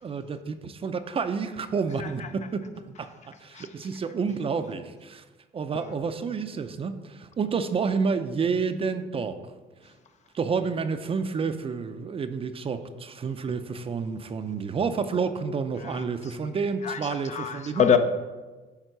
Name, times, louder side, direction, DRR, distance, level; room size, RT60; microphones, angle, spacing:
voice 1, 0.0-5.2 5.5-9.4 9.8-9.9 10.3-17.9, right 5 dB, 35° right, 0.6 m, -29 dB
voice 2, 16.8-18.0, left 8 dB, 45° left, 0.7 m, -25 dB
10.5 x 3.6 x 6.6 m
cardioid pair, 110°, 17 cm